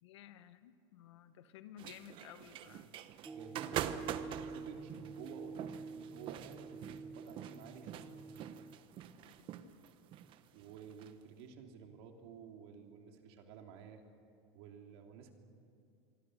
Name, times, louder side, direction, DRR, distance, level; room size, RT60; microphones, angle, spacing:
voice 1, 0.0-3.0 9.1-9.7, left 11 dB, 90° left, 11 dB, 1.4 m, -56 dB
sound 1, 1.8-11.1, right 11 dB, 35° right, 1.0 m, -45 dB
sound 2, 3.2-8.8, right 4 dB, 5° right, 0.5 m, -48 dB
voice 2, 3.3-3.9 4.5-8.2 10.5-14.0 14.5-15.3, right 6 dB, 65° right, 3 dB, 3.3 m, -52 dB
26.5 x 24.0 x 6.5 m, 2.5 s
supercardioid pair, 155°, 14 cm